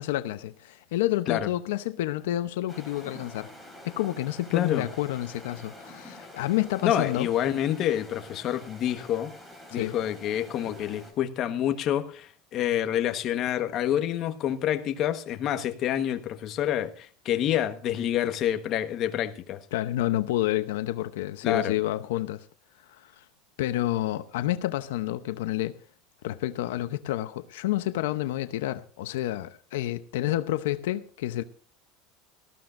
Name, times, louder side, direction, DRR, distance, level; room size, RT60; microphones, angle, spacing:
voice 1, 0.0-3.5 3.8-7.3 9.7-9.9 19.7-22.5 22.9-23.2 23.6-25.8 26.2-31.4, left 14 dB, 90° left, 0.8 m, -29 dB
sound 1, 2.7-11.1, left 1 dB, 5° right, 3.6 m, -47 dB
voice 2, 4.5-4.8 6.8-9.3 9.7-19.6 21.4-21.7, left 11 dB, 40° left, 1.3 m, -27 dB
19.0 x 14.0 x 2.6 m
supercardioid pair, 155°, 0 cm